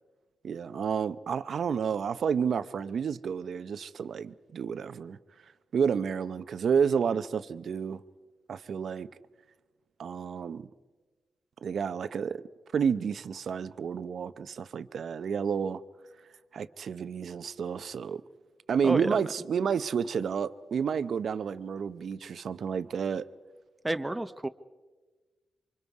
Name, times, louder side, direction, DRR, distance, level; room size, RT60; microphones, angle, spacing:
voice 1, 0.4-5.2 5.7-8.0 8.5-9.1 10.0-10.7 11.6-12.4 12.7-15.8 16.5-18.2 18.7-23.3, right 6 dB, 70° right, 0.7 m, -30 dB
voice 2, 23.8-24.5, right 1 dB, 15° right, 0.8 m, -30 dB
28.0 x 24.5 x 4.8 m
cardioid pair, 80°, 0 cm